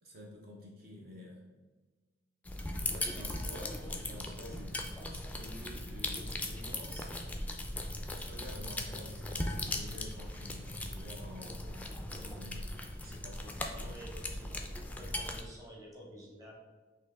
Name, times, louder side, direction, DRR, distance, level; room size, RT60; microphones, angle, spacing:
voice 1, 0.0-1.4 2.7-7.1 8.1-12.7 13.0-14.0, equal, 55° right, -2 dB, 0.6 m, -50 dB
sound 1, 2.4-15.4, left 1 dB, 10° left, 0.3 m, -39 dB
voice 2, 2.8-3.3 13.8-16.5, right 1 dB, 20° right, -3 dB, 0.9 m, -51 dB
4.3 x 2.8 x 3.4 m, 1.3 s
head